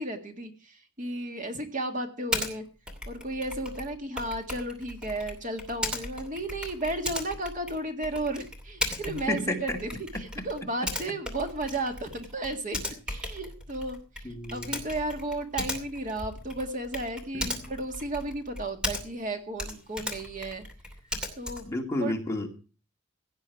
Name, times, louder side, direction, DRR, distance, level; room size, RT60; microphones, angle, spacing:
voice 1, 0.0-2.6 3.1-9.9 10.2-12.8 13.1-20.6 21.4-21.7 22.0-22.1, right 1 dB, 35° right, 5 dB, 1.9 m, -34 dB
Typing, 2.3-2.5 2.9-19.3 19.5-21.8, left 1 dB, 5° right, 2.7 m, -37 dB
voice 2, 9.3-9.8 10.1-10.2 14.2-14.8 17.3-17.7 21.6-22.5, left 1 dB, 15° left, 1 dB, 2.3 m, -31 dB
17.0 x 10.0 x 4.7 m, 0.36 s
head